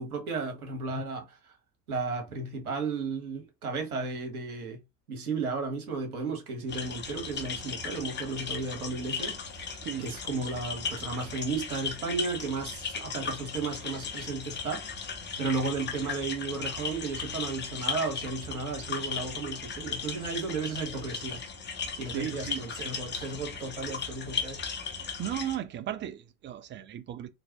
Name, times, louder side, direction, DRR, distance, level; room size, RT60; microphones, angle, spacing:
voice 1, 0.0-1.5 1.9-4.8 5.1-21.4 22.0-24.6, right 4 dB, 75° right, 1.3 m, -34 dB
sound 1, 6.7-25.6, left 6 dB, 25° left, 0.9 m, -37 dB
voice 2, 22.1-22.6 25.2-27.3, right 11 dB, 25° right, 0.5 m, -35 dB
3.8 x 2.8 x 2.9 m
figure-of-eight pair, 65°, 44 cm